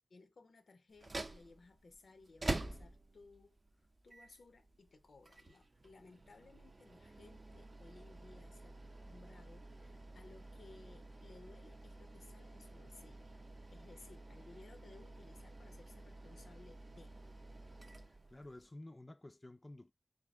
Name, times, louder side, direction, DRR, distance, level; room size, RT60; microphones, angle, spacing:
voice 1, 0.1-13.3 13.7-17.1, left 3 dB, 80° left, 0.5 m, -60 dB
sound 1, 0.9-18.7, right 2 dB, 45° right, 0.5 m, -48 dB
voice 2, 18.0-19.9, left 1 dB, 30° left, 0.3 m, -53 dB
3.6 x 2.7 x 3.3 m
wide cardioid pair, 60°, 0 cm